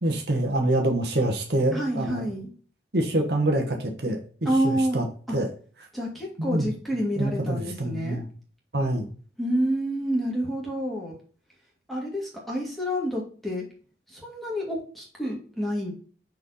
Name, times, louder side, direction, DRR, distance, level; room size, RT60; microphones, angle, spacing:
voice 1, 0.0-2.2 2.9-5.1 5.3-5.5 6.4-6.7 7.2-8.3 8.7-9.1, right 1 dB, 60° right, 3 dB, 1.3 m, -26 dB
voice 2, 1.7-2.5 4.5-5.0 5.3-5.4 5.9-8.2 9.4-11.1 11.9-13.7 14.1-15.9, equal, ahead, -3 dB, 2.2 m, -28 dB
6.2 x 4.5 x 4.1 m, 0.42 s
head